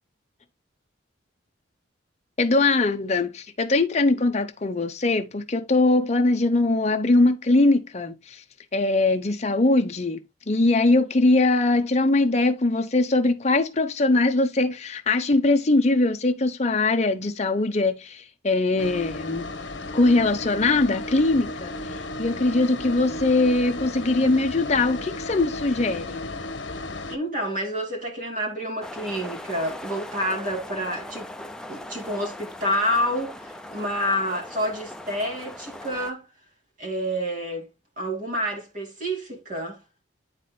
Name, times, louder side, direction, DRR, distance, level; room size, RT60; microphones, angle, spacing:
voice 1, 2.4-8.4 8.7-10.2 10.5-19.5 19.9-21.7 22.2-26.3, left 2 dB, 35° left, 0.8 m, -21 dB
sound 1, 18.8-27.2, left 2 dB, 70° left, 1.1 m, -34 dB
voice 2, 27.1-31.3 31.7-36.3 36.8-37.7 38.0-39.8, equal, 45° right, 2.3 m, -28 dB
sound 2, 28.8-36.1, left 1 dB, 5° left, 0.4 m, -39 dB
10.5 x 4.2 x 2.2 m
head